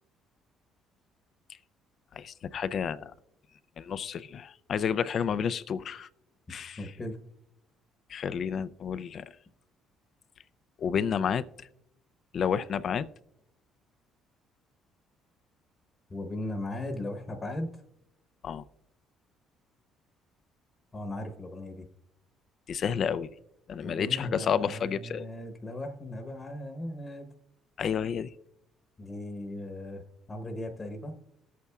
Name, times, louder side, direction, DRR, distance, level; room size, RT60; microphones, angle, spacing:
voice 1, 2.1-3.1 3.8-6.1 6.5-6.8 8.1-9.3 10.8-11.7 12.3-13.1 18.4-18.6 22.7-23.3 23.7-25.3 27.8-28.3, left 7 dB, 55° left, 0.4 m, -30 dB
voice 2, 6.8-7.2 16.1-17.7 20.9-21.9 23.8-27.3 29.0-30.0 30.3-31.2, left 1 dB, 25° left, 1.0 m, -37 dB
19.5 x 8.3 x 2.3 m
cardioid pair, 95°, 0 cm